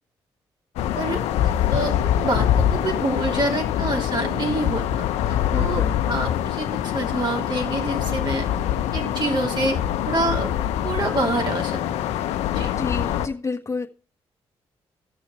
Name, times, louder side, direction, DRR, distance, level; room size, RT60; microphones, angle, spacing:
sound 1, 0.8-13.3, left 10 dB, 90° left, 0.7 m, -24 dB
voice 1, 0.9-8.5 8.9-9.8 10.1-10.5 10.8-11.8 12.5-12.7, right 2 dB, 45° right, 1 dB, 3.3 m, -27 dB
voice 2, 5.5-6.0 12.7-13.9, left 4 dB, 30° left, 2 dB, 1.5 m, -29 dB
15.5 x 6.4 x 4.3 m, 0.40 s
supercardioid pair, 55°, 11 cm